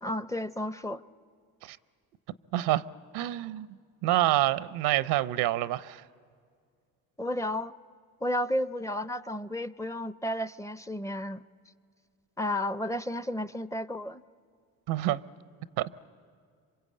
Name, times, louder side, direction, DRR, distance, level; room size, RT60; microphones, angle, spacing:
voice 1, 0.0-1.0 7.2-7.7 8.2-11.4 12.4-14.2, left 1 dB, 10° left, 0.6 m, -32 dB
voice 2, 2.5-2.8 3.1-3.7 4.0-6.0 14.9-15.2 15.8-16.1, right 14 dB, 80° right, 0.7 m, -27 dB
27.0 x 24.0 x 8.5 m
supercardioid pair, 70°, 38 cm